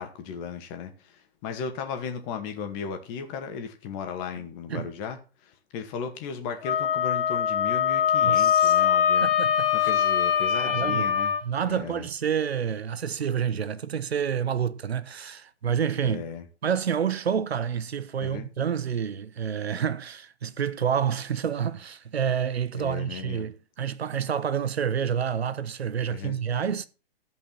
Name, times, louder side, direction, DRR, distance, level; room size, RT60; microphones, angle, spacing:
voice 1, 0.0-9.3 9.7-11.3 11.7-12.1 16.0-16.5 18.2-18.5 22.7-23.5 26.1-26.4, left 6 dB, 30° left, 2.2 m, -36 dB
Wind instrument woodwind instrument, 6.6-11.4, left 9 dB, 60° left, 1.4 m, -23 dB
voice 2, 8.2-8.8 9.2-9.9 10.6-11.1 11.4-16.2 16.6-26.9, right 8 dB, 75° right, 1.1 m, -28 dB
14.0 x 5.5 x 5.9 m
hypercardioid pair, 125°, 32 cm